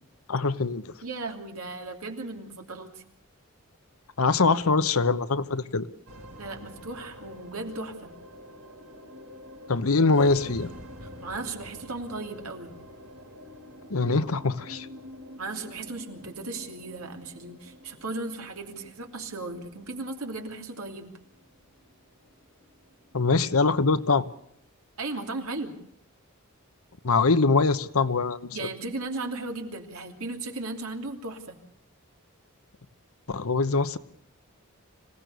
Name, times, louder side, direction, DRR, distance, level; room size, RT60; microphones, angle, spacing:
voice 1, 0.3-0.9 4.2-5.9 9.7-10.7 13.9-14.9 23.1-24.3 27.0-28.6 33.3-34.0, left 3 dB, 80° left, 1.0 m, -23 dB
voice 2, 1.0-3.0 6.4-8.1 11.0-12.7 15.4-21.1 25.0-25.7 28.5-31.6, right 3 dB, 80° right, 3.0 m, -36 dB
sound 1, 6.1-24.6, equal, 65° right, 2.6 m, -47 dB
26.0 x 16.5 x 6.8 m
head